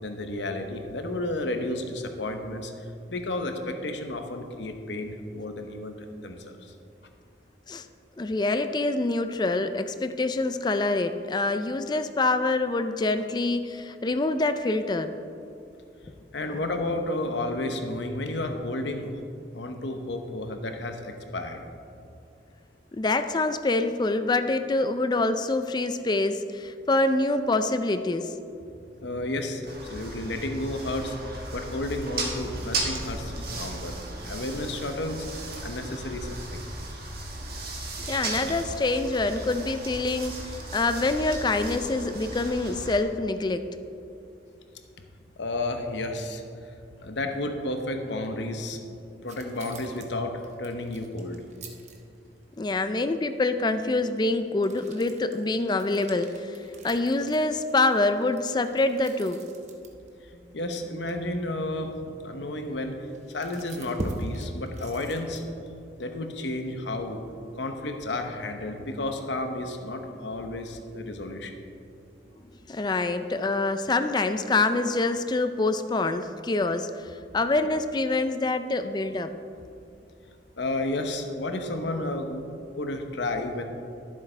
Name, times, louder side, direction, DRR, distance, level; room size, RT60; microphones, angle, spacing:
voice 1, 0.0-6.7 16.3-19.2 19.5-21.7 29.0-31.2 31.5-34.0 34.2-36.6 45.4-46.7 47.0-48.9 49.2-51.4 60.2-65.4 66.0-67.2 67.5-71.5 80.6-82.4 82.8-83.6, left 2 dB, 75° left, 5 dB, 1.0 m, -32 dB
voice 2, 8.2-15.2 16.5-16.6 22.9-28.3 38.1-43.7 52.6-56.6 56.8-59.4 72.7-79.3, left 2 dB, 25° left, 9 dB, 0.4 m, -26 dB
sound 1, 29.7-43.0, right 2 dB, 55° right, 1.7 m, -36 dB
sound 2, 49.3-52.6 54.6-60.1 60.6-60.7 61.1-61.2 62.7-62.8 63.1-65.8, right 1 dB, 40° right, 1.0 m, -41 dB
12.0 x 7.3 x 4.4 m, 2.6 s
head